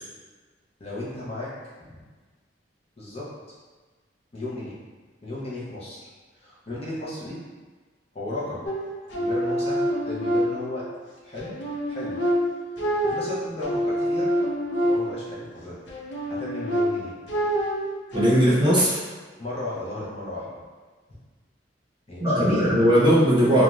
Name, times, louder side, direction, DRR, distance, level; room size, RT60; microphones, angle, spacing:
voice 1, 0.8-1.5 1.8-2.0 3.0-3.3 4.3-4.7 5.2-6.0 6.4-7.4 8.1-8.7 9.1-10.9 11.2-11.6 11.9-12.2 12.8-14.3 14.8-15.8 16.3-17.1 19.4-20.6 22.1-22.7, left 2 dB, 35° left, -8 dB, 0.6 m, -35 dB
sound 1, 8.7-11.0 11.4-15.4 15.9-18.3, equal, 75° left, 0.4 m, -26 dB
voice 2, 18.1-19.0 22.2-23.6, equal, 25° right, -8 dB, 0.7 m, -19 dB
2.5 x 2.2 x 3.0 m, 1.4 s
head